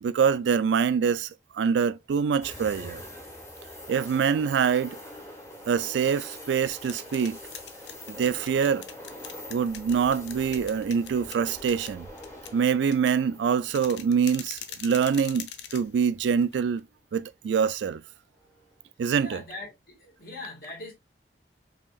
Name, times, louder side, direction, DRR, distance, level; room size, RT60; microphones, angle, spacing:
voice 1, 0.0-1.3 1.5-3.0 3.9-5.0 5.7-7.4 8.1-8.8 9.5-12.1 12.5-16.8 17.1-18.0 19.0-19.4, right 6 dB, 90° right, 0.3 m, -25 dB
sound 1, 2.4-15.4 15.8-15.9 18.4-18.8, left 1 dB, 15° left, 1.0 m, -44 dB
sound 2, 6.4-16.8, left 9 dB, 85° left, 0.6 m, -44 dB
voice 2, 19.2-20.9, left 2 dB, 55° left, 1.8 m, -41 dB
5.0 x 2.9 x 2.2 m
head